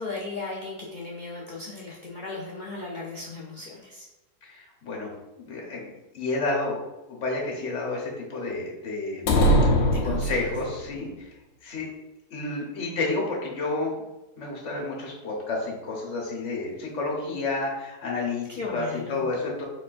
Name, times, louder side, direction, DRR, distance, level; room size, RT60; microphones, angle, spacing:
voice 1, 0.0-4.1 9.9-10.4 18.6-19.3, left 3 dB, 85° left, -3 dB, 0.4 m, -36 dB
voice 2, 4.4-5.1 5.4-6.8 7.1-9.4 10.0-11.3 11.6-11.9 12.3-13.9 14.4-19.6, left 3 dB, 50° left, -2 dB, 1.4 m, -30 dB
sound 1, 9.3-10.9, equal, 65° left, 1.1 m, -21 dB
4.6 x 4.3 x 2.5 m, 1.0 s
omnidirectional pair, 1.7 m